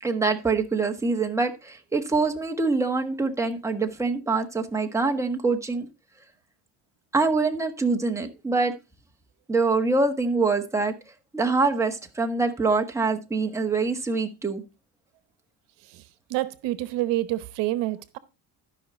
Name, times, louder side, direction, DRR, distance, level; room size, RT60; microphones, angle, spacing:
voice 1, 0.0-5.9 7.1-8.7 9.5-10.9 11.3-14.6, right 3 dB, 5° right, 1.4 m, -24 dB
voice 2, 16.3-18.2, right 15 dB, 85° right, 1.0 m, -27 dB
13.0 x 5.7 x 4.3 m
cardioid pair, 130°, 42 cm